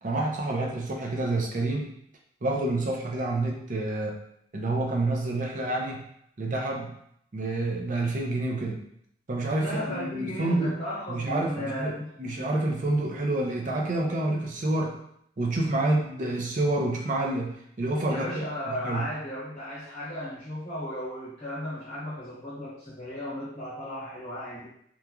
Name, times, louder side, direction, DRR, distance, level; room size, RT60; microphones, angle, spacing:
voice 1, 0.0-1.9 2.4-4.2 4.5-6.0 6.4-6.9 7.3-8.8 9.3-10.8 11.1-11.9 12.2-15.0 15.4-17.5 17.8-18.4 18.8-19.0, right 2 dB, 45° right, 0 dB, 0.5 m, -28 dB
voice 2, 9.6-12.1 12.5-12.6 18.1-24.7, left 1 dB, 35° left, -11 dB, 1.0 m, -35 dB
3.0 x 2.4 x 2.3 m, 0.71 s
head